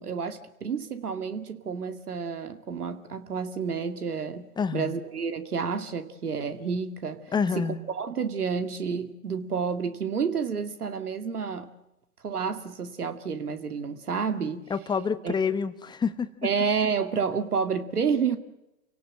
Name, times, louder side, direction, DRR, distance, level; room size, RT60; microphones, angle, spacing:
voice 1, 0.0-7.2 7.6-11.7 12.2-14.7 15.2-15.3 16.4-18.4, right 6 dB, 80° right, 10 dB, 2.4 m, -30 dB
voice 2, 4.6-4.9 7.3-7.8 14.7-16.3, left 6 dB, 10° left, 13 dB, 1.0 m, -27 dB
29.0 x 18.0 x 7.7 m, 0.94 s
hypercardioid pair, 115°, 45 cm